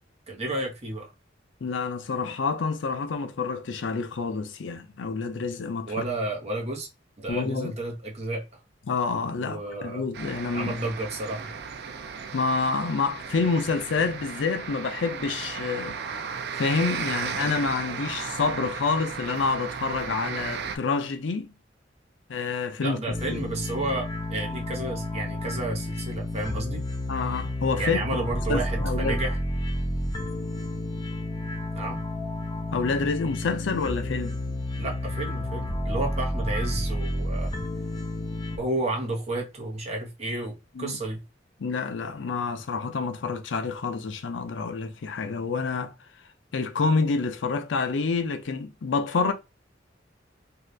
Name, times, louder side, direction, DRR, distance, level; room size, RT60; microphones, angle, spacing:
voice 1, 0.3-1.1 5.9-6.9 7.2-8.6 9.4-10.0 10.5-11.5 22.8-26.8 27.8-29.4 31.7-32.0 34.8-37.5 38.6-41.2, right 2 dB, 35° right, 0.9 m, -31 dB
voice 2, 1.6-5.9 7.3-7.7 8.9-10.7 12.3-16.0 16.6-21.5 22.3-23.0 23.3-23.4 27.1-28.2 28.5-29.2 32.7-34.4 40.8-41.0 41.6-45.9 46.5-49.3, left 4 dB, 70° left, 0.5 m, -28 dB
sound 1, 10.1-20.8, right 6 dB, 60° right, 0.4 m, -35 dB
sound 2, 23.1-38.6, left 1 dB, 25° left, 0.6 m, -31 dB
2.7 x 2.4 x 3.2 m
head